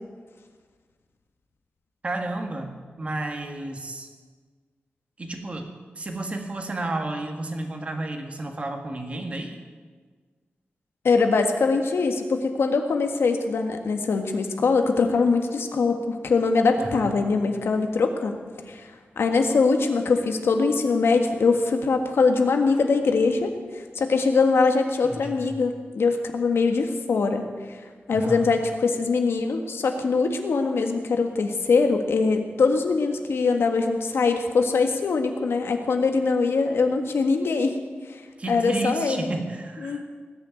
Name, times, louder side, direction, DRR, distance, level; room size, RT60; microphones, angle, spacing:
voice 1, 2.0-4.1 5.2-5.7 6.0-9.6 16.8-17.2 25.0-25.6 28.1-28.5 38.4-40.0, right 2 dB, 30° right, 3 dB, 1.8 m, -32 dB
voice 2, 11.0-18.4 18.7-18.8 19.2-27.4 28.1-37.8 38.5-39.3 39.8-40.0, left 4 dB, 90° left, 5 dB, 1.7 m, -22 dB
19.5 x 6.9 x 9.2 m, 1.5 s
wide cardioid pair, 170°, 4 cm